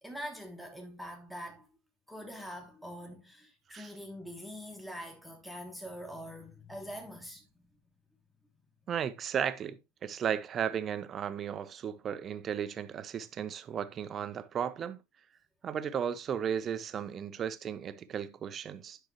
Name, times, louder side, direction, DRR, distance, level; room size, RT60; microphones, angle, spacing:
voice 1, 0.0-1.7 2.1-7.7, equal, ahead, 1.3 m, -44 dB
voice 2, 8.9-15.0 15.6-19.0, right 8 dB, 25° right, 0.7 m, -35 dB
9.6 x 5.9 x 3.0 m
figure-of-eight pair, 90°, 0 cm